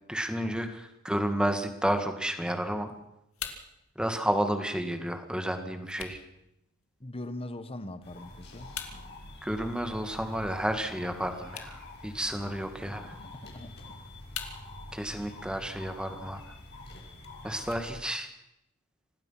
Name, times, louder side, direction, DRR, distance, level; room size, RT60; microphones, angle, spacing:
voice 1, 0.1-2.9 4.0-6.2 9.4-13.1 14.9-16.4 17.4-18.3, right 1 dB, 5° right, 7 dB, 2.0 m, -31 dB
sound 1, 2.5-18.5, left 8 dB, 65° left, 2.3 m, -49 dB
voice 2, 7.0-8.7 12.8-13.0 13.2-13.7, left 1 dB, 25° left, 12 dB, 1.3 m, -41 dB
sound 2, 8.0-17.9, left 2 dB, 45° left, 5.7 m, -46 dB
26.5 x 19.0 x 5.9 m, 0.84 s
head